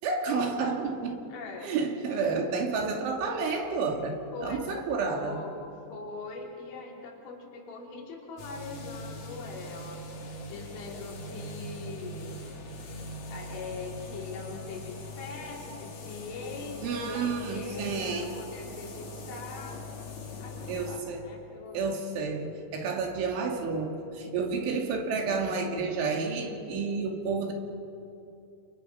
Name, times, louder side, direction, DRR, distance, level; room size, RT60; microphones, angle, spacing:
voice 1, 0.0-1.2 1.6-5.4 16.8-18.3 20.7-21.2 21.7-27.5, right 4 dB, 85° right, 2 dB, 4.9 m, -30 dB
voice 2, 1.3-1.7 4.3-10.0 10.5-12.5 13.3-19.8 20.4-22.0, left 3 dB, 80° left, -2 dB, 5.4 m, -42 dB
sound 1, 8.4-21.0, left 2 dB, 45° left, 3.1 m, -41 dB
30.0 x 28.5 x 5.8 m, 2.7 s
omnidirectional pair, 5.3 m